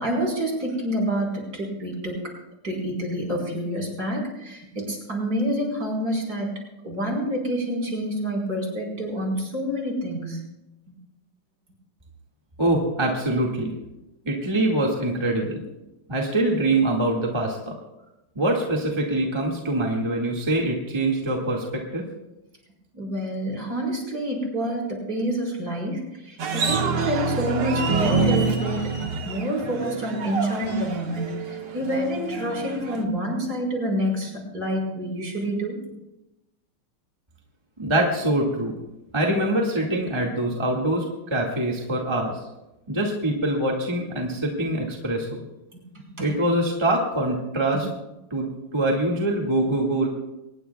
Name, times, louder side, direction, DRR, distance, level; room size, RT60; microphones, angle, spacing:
voice 1, 0.0-2.2 2.6-6.5 6.8-10.4 22.9-28.9 29.2-35.8 46.2-46.3 47.7-47.8, equal, 45° right, -2 dB, 5.1 m, -28 dB
voice 2, 12.6-13.7 14.3-15.6 16.1-17.8 18.4-22.0 37.8-38.8 39.1-41.0 41.3-42.3 42.9-45.4 46.2-47.9 48.3-50.1, right 1 dB, 15° right, -2 dB, 1.9 m, -24 dB
sound 1, 26.4-33.0, right 4 dB, 85° right, 2.3 m, -27 dB
23.5 x 19.5 x 2.3 m, 0.96 s
omnidirectional pair, 2.3 m